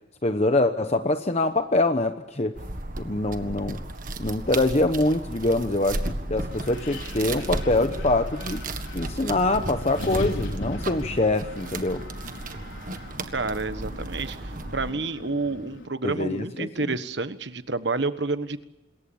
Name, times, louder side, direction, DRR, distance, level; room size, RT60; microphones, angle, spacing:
voice 1, 0.2-2.5 3.0-3.8 4.2-8.6 8.9-12.0 16.0-16.9, left 2 dB, 35° left, 7 dB, 1.0 m, -24 dB
sound 1, 2.5-14.9, right 2 dB, 45° right, 1.7 m, -34 dB
Wind, 5.9-15.9, left 1 dB, 75° left, 4.5 m, -38 dB
voice 2, 13.3-18.6, right 3 dB, 60° right, 11 dB, 1.4 m, -29 dB
27.0 x 22.0 x 7.2 m, 1.0 s
head